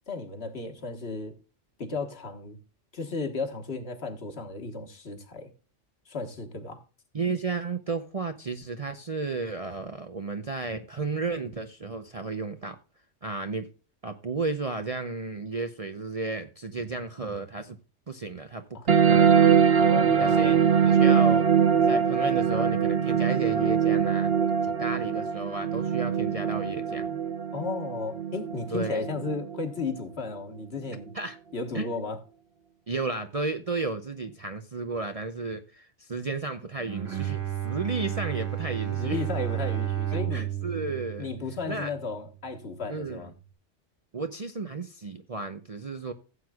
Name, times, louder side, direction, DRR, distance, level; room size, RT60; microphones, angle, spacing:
voice 1, 0.1-1.3 1.8-2.6 2.9-5.5 6.1-6.8 18.7-18.8 19.8-20.6 27.5-31.2 31.5-32.2 39.0-40.5 41.2-43.3, left 3 dB, 55° left, 1.6 m, -34 dB
voice 2, 7.1-12.8 13.2-13.7 14.0-17.8 18.1-18.6 19.1-19.4 20.2-21.4 21.9-24.3 24.6-27.2 28.7-29.0 31.1-31.4 31.7-32.0 32.9-39.2 40.3-41.3 41.7-41.9 42.9-43.2 44.1-46.1, right 3 dB, 35° right, 0.6 m, -33 dB
sound 1, 18.9-29.9, right 7 dB, 55° right, 1.0 m, -22 dB
Bowed string instrument, 36.8-42.1, right 12 dB, 90° right, 2.4 m, -32 dB
16.0 x 7.8 x 2.3 m
omnidirectional pair, 1.3 m